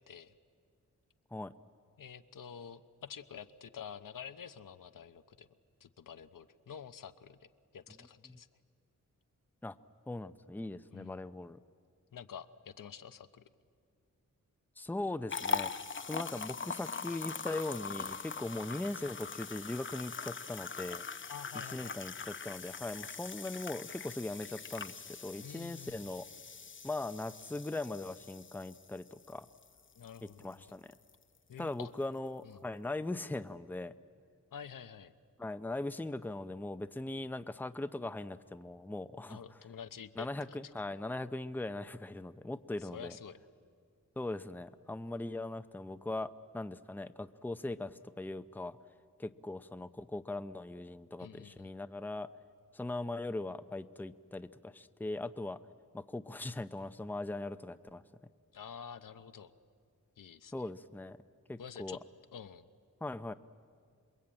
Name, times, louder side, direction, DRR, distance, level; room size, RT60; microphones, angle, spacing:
voice 1, 2.0-5.5 5.8-7.5 7.7-8.5 10.9-11.2 12.1-13.5 21.3-22.0 25.4-26.0 29.9-30.6 31.5-31.9 32.4-32.6 34.5-35.1 39.3-40.6 42.8-43.4 51.2-51.7 58.5-59.5 60.2-60.5 61.6-62.0 62.3-62.7, left 7 dB, 85° left, 10 dB, 0.9 m, -48 dB
voice 2, 10.1-11.6 14.8-15.7 16.1-21.0 21.7-26.3 26.8-29.5 30.4-30.9 31.6-33.9 35.4-39.6 40.2-43.2 44.2-48.8 49.2-52.3 52.7-55.6 55.9-58.0 60.5-61.2 61.5-62.0 63.0-63.3, left 2 dB, 5° left, 11 dB, 0.6 m, -40 dB
sound 1, 15.3-30.5 30.9-31.1 31.6-31.7, left 5 dB, 40° left, 0.7 m, -42 dB
27.0 x 22.0 x 8.8 m, 2.2 s
wide cardioid pair, 85°, 32 cm